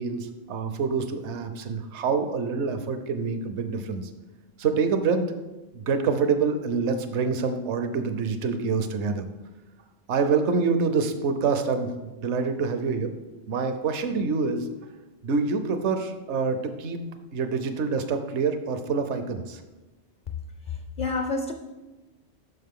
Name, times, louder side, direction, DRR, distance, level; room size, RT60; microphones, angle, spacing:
voice 1, 0.0-4.1 4.6-5.3 5.7-9.3 10.1-13.1 13.5-14.7 15.2-17.0 17.3-19.6, right 5 dB, 65° right, 8 dB, 1.0 m, -26 dB
voice 2, 20.7-21.5, left 3 dB, 55° left, 6 dB, 0.6 m, -29 dB
9.4 x 6.2 x 3.7 m, 1.1 s
omnidirectional pair, 1.3 m